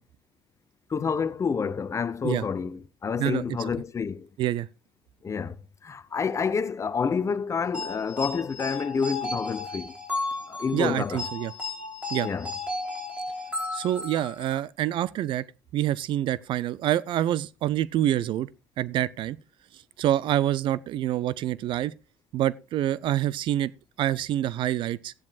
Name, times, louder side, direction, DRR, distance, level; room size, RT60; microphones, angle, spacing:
voice 1, 0.9-4.3 5.2-5.6 5.8-10.0 10.5-11.3 12.2-12.5, left 6 dB, 30° left, 0.8 m, -28 dB
voice 2, 3.2-3.6 4.4-4.7 10.7-11.5 12.1-12.3 13.7-15.4 15.7-18.5 18.8-19.4 20.0-21.9 22.3-23.7 24.0-25.1, right 12 dB, 50° right, 0.5 m, -26 dB
sound 1, 7.7-14.6, left 3 dB, 10° right, 3.5 m, -34 dB
15.5 x 10.5 x 2.4 m
hypercardioid pair, 65°, 10 cm